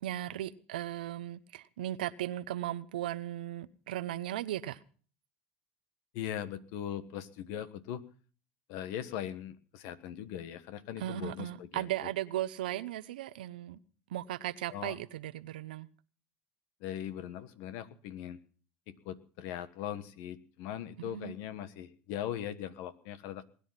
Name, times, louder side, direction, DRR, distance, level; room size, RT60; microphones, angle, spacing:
voice 1, 0.0-4.8 11.0-13.8 14.1-15.9 21.0-21.4, right 13 dB, 90° right, 0.8 m, -37 dB
voice 2, 6.1-8.0 8.7-12.1 14.7-15.0 16.8-18.4 18.9-23.4, left 10 dB, 70° left, 1.4 m, -40 dB
20.5 x 10.0 x 5.8 m
supercardioid pair, 90°, 5 cm